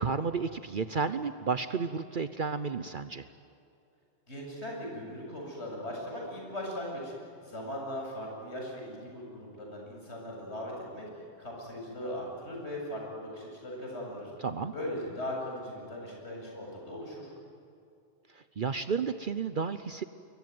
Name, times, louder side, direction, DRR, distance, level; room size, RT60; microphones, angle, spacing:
voice 1, 0.0-3.3 14.4-14.7 18.3-20.0, right 5 dB, 55° right, 11 dB, 0.9 m, -32 dB
voice 2, 4.3-7.1 7.4-11.1 11.4-14.3 14.7-17.3, left 1 dB, 85° left, -1 dB, 8.1 m, -39 dB
28.0 x 22.5 x 9.5 m, 2.6 s
omnidirectional pair, 1.1 m